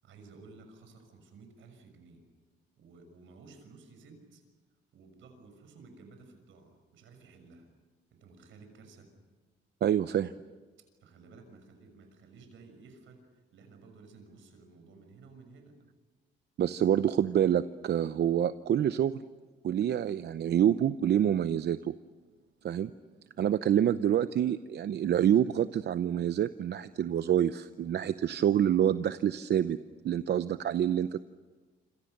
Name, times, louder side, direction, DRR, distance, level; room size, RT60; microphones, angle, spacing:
voice 1, 0.0-2.2 2.8-4.4 4.9-7.7 8.1-9.1 11.0-15.8 16.7-17.1, right 4 dB, 80° right, 7 dB, 6.2 m, -54 dB
voice 2, 9.8-10.3 16.6-19.1 19.6-21.9 22.6-22.9 23.4-29.8 30.0-31.2, right 10 dB, 60° right, 13 dB, 0.7 m, -27 dB
27.0 x 26.5 x 6.7 m, 1.4 s
cardioid pair, 90°, 20 cm